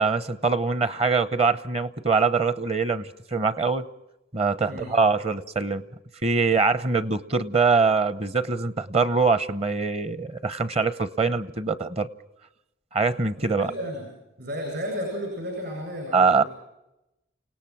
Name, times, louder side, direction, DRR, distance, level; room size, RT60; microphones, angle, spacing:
voice 1, 0.0-3.9 4.3-5.8 6.2-12.1 12.9-13.7 16.1-16.4, right 4 dB, 35° right, 15 dB, 0.8 m, -23 dB
voice 2, 13.4-14.1 14.4-16.5, equal, 60° right, 1 dB, 7.9 m, -33 dB
29.5 x 18.0 x 6.0 m, 0.92 s
head